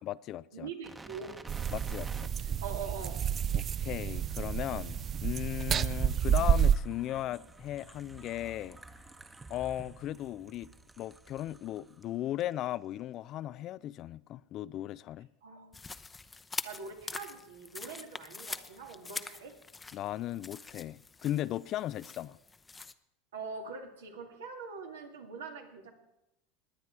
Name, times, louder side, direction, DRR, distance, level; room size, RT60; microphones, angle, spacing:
voice 1, 0.0-0.7 1.7-2.6 3.5-8.8 9.5-10.7 11.0-15.3 19.9-22.4, left 13 dB, 50° left, 0.4 m, -37 dB
voice 2, 0.5-1.3 2.6-3.2 15.4-15.8 16.6-19.5 23.3-25.9, right 5 dB, 85° right, 2.3 m, -43 dB
sound 1, 0.8-12.1 12.4-12.5, right 2 dB, 15° right, 1.1 m, -50 dB
sound 2, 1.5-6.8, right 9 dB, 35° right, 0.4 m, -29 dB
sound 3, 15.7-22.9, left 4 dB, 15° left, 0.7 m, -44 dB
20.5 x 9.0 x 4.7 m
hypercardioid pair, 90°, 0 cm